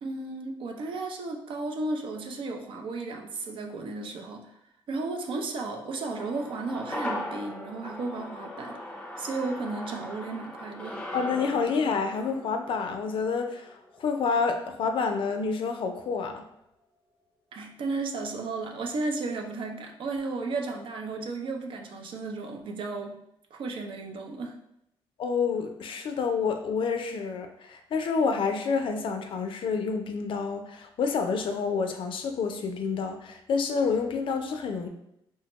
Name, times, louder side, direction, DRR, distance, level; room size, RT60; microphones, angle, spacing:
voice 1, 0.0-4.5 4.9-8.8 9.2-11.0 17.5-23.2 23.5-24.6, right 3 dB, 65° right, 2 dB, 0.5 m, -34 dB
sound 1, 6.2-14.7 15.0-15.1, left 1 dB, 10° left, 0.5 m, -39 dB
voice 2, 11.1-16.4 25.2-34.9, left 5 dB, 65° left, 5 dB, 0.4 m, -28 dB
3.3 x 2.1 x 2.9 m, 0.80 s
cardioid pair, 95°, 9 cm